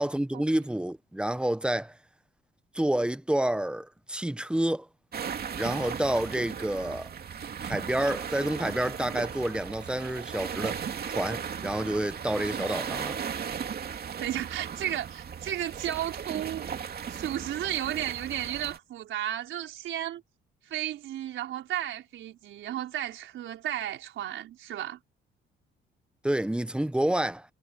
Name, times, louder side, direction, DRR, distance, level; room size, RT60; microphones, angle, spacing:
voice 1, 0.0-1.9 2.7-4.9 5.5-7.1 7.6-10.8 11.1-13.2 26.2-27.4, right 1 dB, 5° right, 0.8 m, -29 dB
sound 1, 5.1-18.8, right 7 dB, 50° right, 2.5 m, -36 dB
voice 2, 14.2-16.7 17.1-20.2 20.7-25.0, right 12 dB, 80° right, 4.6 m, -33 dB
cardioid pair, 90°, 20 cm